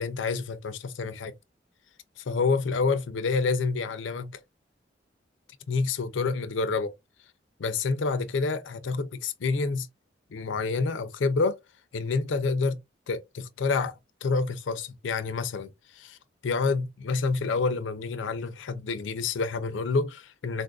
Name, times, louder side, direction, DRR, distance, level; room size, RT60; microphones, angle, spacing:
voice 1, 0.0-1.3 2.2-4.4 5.7-6.9 7.6-9.9 10.3-11.6 11.9-12.8 13.1-16.2 16.4-20.6, left 4 dB, 85° left, 0.5 m, -28 dB
3.9 x 2.5 x 2.3 m
head